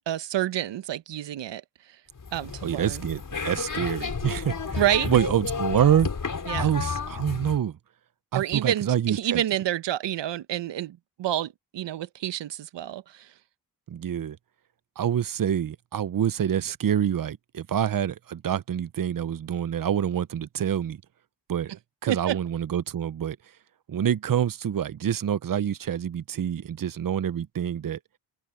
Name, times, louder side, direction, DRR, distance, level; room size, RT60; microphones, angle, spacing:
voice 1, 0.0-1.6 1.9-2.0 2.3-3.0 4.8-5.1 6.5-6.7 8.3-13.3 22.1-22.4, right 12 dB, 70° right, 1.3 m, -28 dB
sound 1, 2.2-7.6, left 5 dB, 45° left, 5.8 m, -32 dB
voice 2, 2.6-6.1 6.6-7.8 8.3-9.4 13.9-14.4 15.0-21.0 21.5-21.7 22.0-23.4 23.9-28.0, right 9 dB, 45° right, 1.1 m, -26 dB
open air
hypercardioid pair, 45°, 45 cm